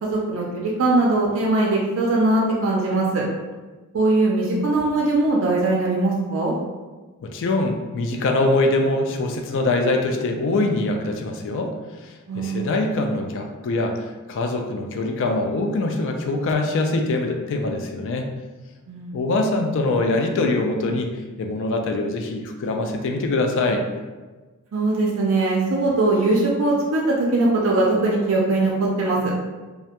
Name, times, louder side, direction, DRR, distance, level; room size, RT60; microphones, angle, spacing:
voice 1, 0.0-3.2 3.9-6.5 12.3-12.7 18.9-19.1 24.7-29.3, right 2 dB, 60° right, -3 dB, 0.4 m, -21 dB
voice 2, 7.2-11.7 12.3-18.3 19.1-21.1 21.4-23.8, left 2 dB, 55° left, 4 dB, 0.3 m, -23 dB
2.3 x 2.1 x 2.8 m, 1.3 s
head